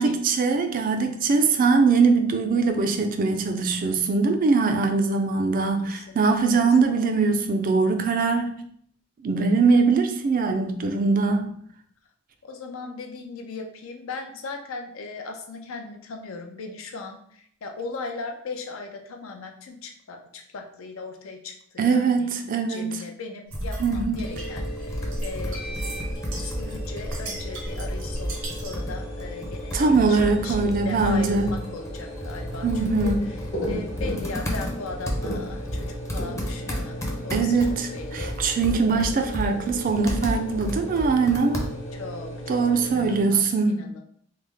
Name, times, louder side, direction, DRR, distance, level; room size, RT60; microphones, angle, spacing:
voice 1, 0.0-8.5 9.2-11.5 21.8-23.0 23.8-24.2 29.7-31.5 32.6-33.2 37.3-41.6 42.5-43.8, right 4 dB, 40° right, 6 dB, 0.4 m, -22 dB
voice 2, 1.3-1.6 5.9-6.1 12.4-22.3 22.7-26.0 26.3-33.4 33.6-38.3 41.9-44.0, left 3 dB, 80° left, 3 dB, 0.5 m, -38 dB
Computer keyboard, 23.5-42.0, equal, 15° left, 0.5 m, -33 dB
sound 1, 23.5-28.9, right 1 dB, 65° right, 0.7 m, -37 dB
sound 2, 24.2-43.2, equal, 55° left, 0.9 m, -37 dB
3.3 x 2.0 x 3.3 m, 0.65 s
head